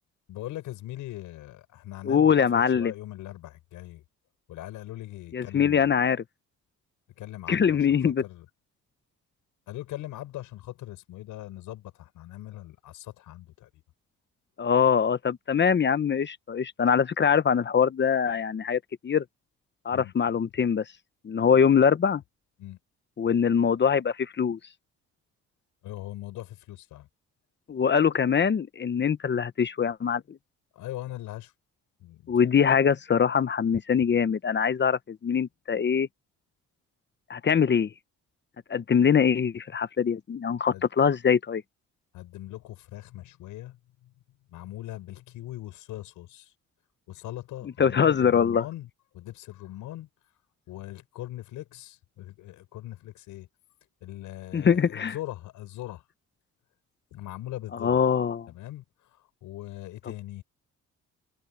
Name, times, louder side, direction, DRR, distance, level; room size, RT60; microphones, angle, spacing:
voice 1, 0.3-4.0 4.5-6.0 7.2-8.5 9.7-13.8 19.9-20.1 22.6-22.8 25.8-27.1 30.7-31.5 32.0-32.4 40.7-40.8 42.1-44.1 44.5-46.5 47.1-50.1 50.7-53.5 54.0-56.1 57.1-58.0 58.5-60.4, left 14 dB, 90° left, 6.7 m, -41 dB
voice 2, 2.0-2.9 5.3-6.2 7.5-8.2 14.6-19.2 19.8-20.8 21.2-22.2 23.2-24.6 27.7-30.4 32.3-36.1 37.3-37.9 38.7-41.6 47.8-48.6 54.5-55.1 57.8-58.5, left 7 dB, 35° left, 0.9 m, -23 dB
cardioid pair, 90°, 30 cm